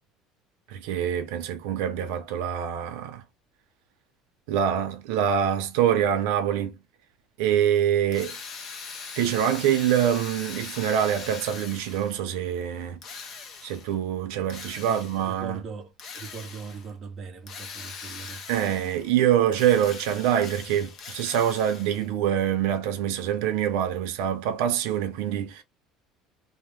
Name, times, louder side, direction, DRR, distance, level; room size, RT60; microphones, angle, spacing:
voice 1, 0.7-3.2 4.5-6.8 7.4-8.4 9.2-13.0 13.6-15.6 18.5-25.6, right 9 dB, 75° right, 0.6 m, -25 dB
Drill, 8.1-12.3 13.0-14.0 14.5-15.3 16.0-16.9 17.5-19.1 19.5-22.1, left 5 dB, 30° left, 0.5 m, -41 dB
voice 2, 14.9-18.4, right 5 dB, 25° right, 0.6 m, -40 dB
2.8 x 2.1 x 3.1 m
cardioid pair, 180°, 0 cm